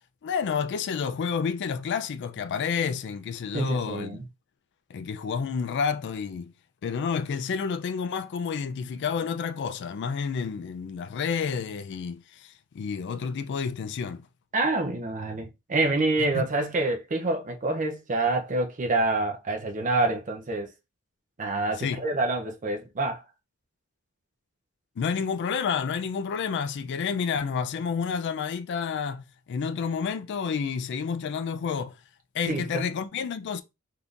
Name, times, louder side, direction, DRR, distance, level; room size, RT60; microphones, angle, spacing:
voice 1, 0.2-4.2 4.9-6.5 6.8-14.3 16.3-16.5 21.8-22.0 25.0-32.0 32.3-33.6, left 6 dB, 55° left, 0.3 m, -30 dB
voice 2, 3.5-4.2 14.5-20.7 21.4-23.2 32.5-32.9, right 2 dB, 40° right, 0.6 m, -27 dB
3.5 x 2.7 x 2.4 m
head